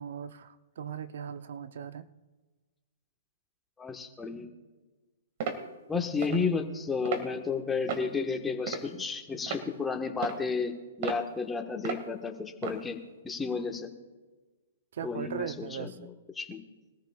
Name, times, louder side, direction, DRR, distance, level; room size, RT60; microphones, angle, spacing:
voice 1, 0.0-2.1 14.9-16.1, right 7 dB, 65° right, 13 dB, 0.7 m, -39 dB
voice 2, 3.8-4.5 5.9-13.0 13.2-13.9 15.0-15.9 16.4-16.6, left 5 dB, 10° left, 4 dB, 1.4 m, -32 dB
sound 1, 5.4-5.6 6.2-6.4 7.0-7.3 7.9-8.1 8.7-9.0 9.5-9.7 10.2-10.4 11.0-11.2 11.8-12.0 12.6-12.8, right 6 dB, 50° right, 2.0 m, -34 dB
23.0 x 14.0 x 2.4 m, 1.3 s
hypercardioid pair, 135°, 0 cm